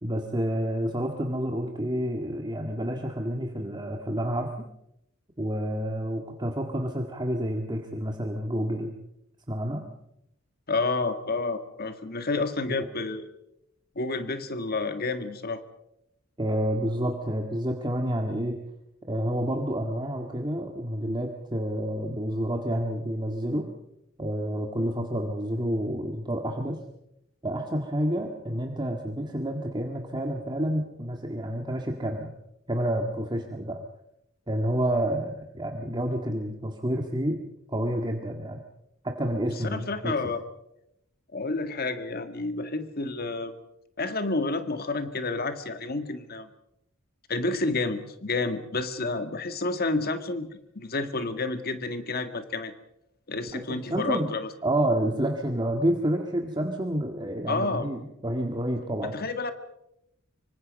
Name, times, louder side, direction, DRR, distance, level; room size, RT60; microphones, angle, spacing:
voice 1, 0.0-4.7 5.4-8.9 9.5-9.8 12.8-12.9 16.4-18.6 19.1-23.7 24.2-26.8 27.4-32.3 32.7-33.8 34.5-37.4 37.7-38.6 39.0-40.2 53.5-54.3 54.6-59.1, right 1 dB, 20° right, 3 dB, 1.9 m, -29 dB
voice 2, 10.7-13.3 14.0-15.6 39.6-40.4 41.3-43.5 44.0-46.5 47.3-52.7 53.3-54.5 57.5-57.9 59.0-59.5, left 3 dB, 50° left, 9 dB, 1.8 m, -30 dB
25.5 x 25.0 x 5.4 m, 0.83 s
head